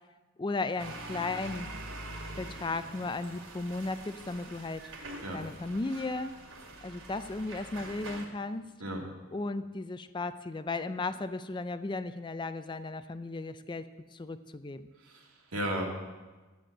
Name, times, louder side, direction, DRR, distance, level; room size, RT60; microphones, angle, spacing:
voice 1, 0.4-1.7 2.4-4.9 5.3-6.3 6.8-8.7 9.3-14.9, left 3 dB, 20° left, 12 dB, 0.4 m, -35 dB
sound 1, 0.8-8.3, right 2 dB, 65° right, 2.2 m, -44 dB
voice 2, 15.0-15.8, right 1 dB, 90° right, 0 dB, 2.4 m, -35 dB
10.0 x 7.9 x 7.8 m, 1.2 s
head